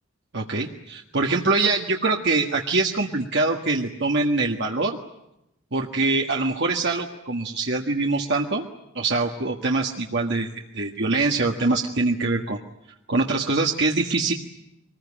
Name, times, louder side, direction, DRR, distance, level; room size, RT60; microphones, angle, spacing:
voice 1, 0.3-5.0 5.7-8.6 8.9-12.6 13.1-14.3, right 3 dB, 60° right, 1 dB, 1.7 m, -24 dB
25.0 x 20.5 x 9.9 m, 0.87 s
head